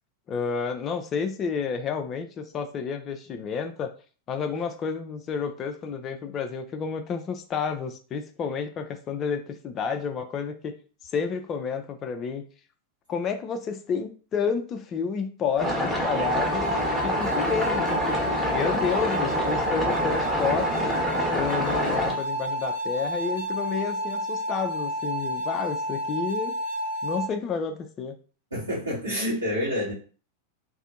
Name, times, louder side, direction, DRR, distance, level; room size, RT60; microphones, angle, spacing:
voice 1, 0.3-3.9 4.3-10.7 11.0-12.4 13.1-16.8 17.0-18.2 18.5-26.5 27.0-28.1, left 6 dB, 30° left, 6 dB, 0.3 m, -30 dB
sound 1, 15.6-22.1, left 1 dB, 5° right, 0.9 m, -27 dB
sound 2, 16.0-27.3, right 1 dB, 65° right, 0.7 m, -30 dB
voice 2, 28.5-29.9, equal, 80° right, -13 dB, 1.3 m, -28 dB
2.6 x 2.5 x 2.4 m, 0.39 s
figure-of-eight pair, 90°, 0 cm